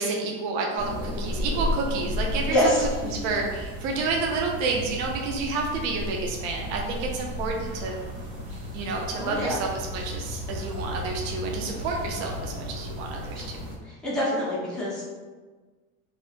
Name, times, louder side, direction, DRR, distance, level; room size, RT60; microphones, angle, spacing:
voice 1, 0.0-2.6 3.0-7.9 8.7-13.4, right 4 dB, 60° right, 0 dB, 0.5 m, -29 dB
sound 1, 0.8-13.8, left 1 dB, 85° right, 1.3 m, -34 dB
voice 2, 2.5-3.1 9.2-9.6 14.0-15.0, equal, ahead, -9 dB, 0.3 m, -25 dB
2.7 x 2.0 x 4.0 m, 1.3 s
supercardioid pair, 165°, 40 cm